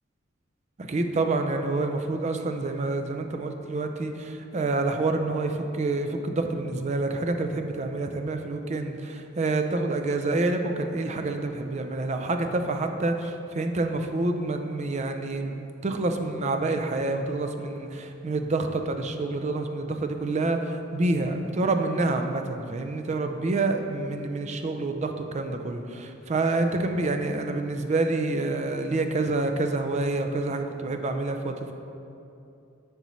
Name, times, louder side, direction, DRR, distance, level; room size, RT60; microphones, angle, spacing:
voice 1, 0.8-31.7, right 2 dB, 35° right, 6 dB, 0.4 m, -27 dB
7.9 x 5.4 x 3.1 m, 2.7 s
head